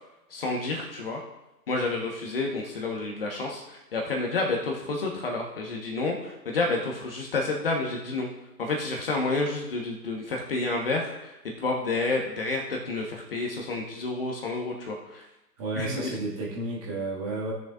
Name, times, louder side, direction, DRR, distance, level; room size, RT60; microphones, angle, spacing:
voice 1, 0.3-1.2 1.7-8.3 8.6-15.2 15.8-16.1, left 3 dB, 35° left, 1 dB, 1.3 m, -29 dB
voice 2, 15.6-17.5, right 2 dB, 20° right, -4 dB, 1.9 m, -32 dB
17.0 x 6.7 x 2.5 m, 0.95 s
figure-of-eight pair, 145°, 49 cm